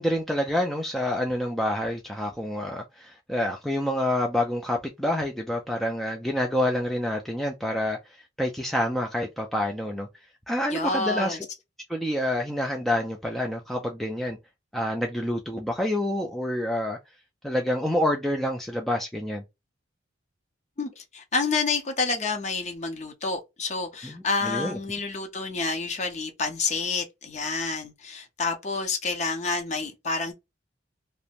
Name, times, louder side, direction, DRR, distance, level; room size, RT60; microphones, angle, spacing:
voice 1, 0.0-10.1 10.5-11.5 11.9-14.4 14.7-17.0 17.4-19.4 24.0-24.8, left 1 dB, ahead, 0.3 m, -27 dB
voice 2, 10.7-11.4 20.8-30.3, left 4 dB, 40° left, 0.6 m, -29 dB
2.5 x 2.1 x 2.8 m
head